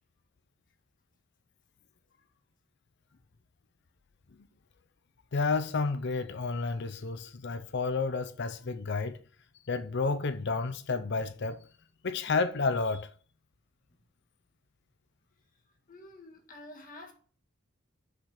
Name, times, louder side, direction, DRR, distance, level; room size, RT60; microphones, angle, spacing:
voice 1, 5.3-9.2 9.7-11.6 12.0-13.1, left 4 dB, 55° left, 0.6 m, -31 dB
voice 2, 15.9-17.1, left 1 dB, 40° left, 1.7 m, -48 dB
6.1 x 5.3 x 6.4 m
head